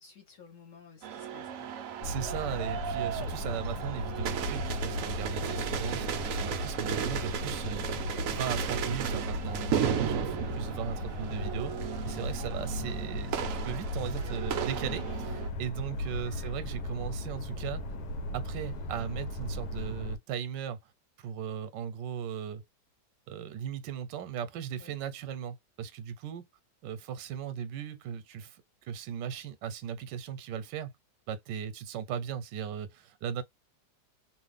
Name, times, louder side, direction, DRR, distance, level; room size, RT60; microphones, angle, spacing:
voice 1, 0.0-1.7 15.8-16.1 24.8-24.9, left 6 dB, 55° left, 1.1 m, -54 dB
sound 1, 1.0-15.5, right 9 dB, 70° right, 0.8 m, -35 dB
sound 2, 2.0-20.2, left 1 dB, 70° left, 1.2 m, -36 dB
voice 2, 2.0-7.9 8.3-17.8 18.3-20.8 21.2-22.6 23.3-26.4 26.8-30.9 31.3-33.4, right 8 dB, 90° right, 1.3 m, -37 dB
3.0 x 2.4 x 3.3 m
omnidirectional pair, 1.9 m